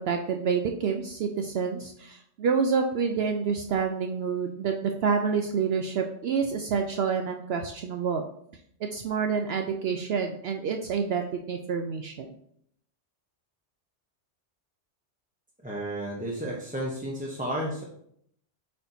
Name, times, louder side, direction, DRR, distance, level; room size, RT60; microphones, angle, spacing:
voice 1, 0.0-8.2 8.9-12.3, right 6 dB, 65° right, 4 dB, 0.7 m, -28 dB
voice 2, 15.6-17.8, right 1 dB, 10° right, -4 dB, 0.7 m, -32 dB
8.2 x 4.4 x 2.7 m, 0.69 s
omnidirectional pair, 1.2 m